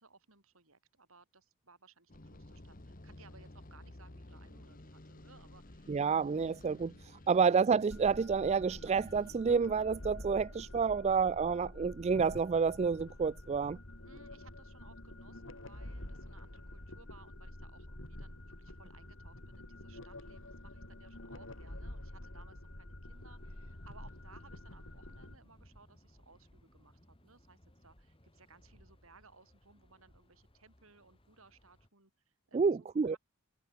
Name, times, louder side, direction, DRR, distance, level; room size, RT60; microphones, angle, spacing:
voice 1, 0.0-6.0 14.0-33.2, right 4 dB, 75° right, 6.6 m, -62 dB
sound 1, 2.1-9.4, left 1 dB, 40° left, 1.6 m, -53 dB
voice 2, 5.9-13.8 32.5-33.2, right 5 dB, 30° right, 0.3 m, -29 dB
sound 2, 7.9-25.4, left 1 dB, 65° left, 3.6 m, -48 dB
sound 3, 23.0-31.9, equal, 25° left, 3.4 m, -63 dB
head